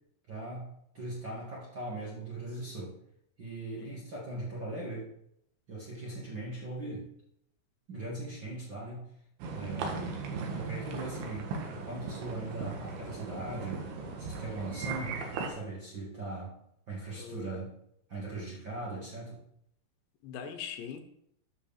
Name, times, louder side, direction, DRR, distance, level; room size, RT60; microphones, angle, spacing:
voice 1, 0.3-0.7 0.9-2.9 3.4-5.1 5.7-7.1 7.9-9.0 9.5-10.1 10.5-13.9 14.2-15.2 15.5-16.5 16.9-17.7 18.1-19.4, right 2 dB, 35° right, -5 dB, 2.0 m, -39 dB
sound 1, 9.4-15.5, right 4 dB, 80° right, 3.7 m, -38 dB
voice 2, 17.2-17.7 20.2-21.0, left 7 dB, 80° left, 7 dB, 3.1 m, -41 dB
9.4 x 5.2 x 7.2 m, 0.74 s
omnidirectional pair, 5.2 m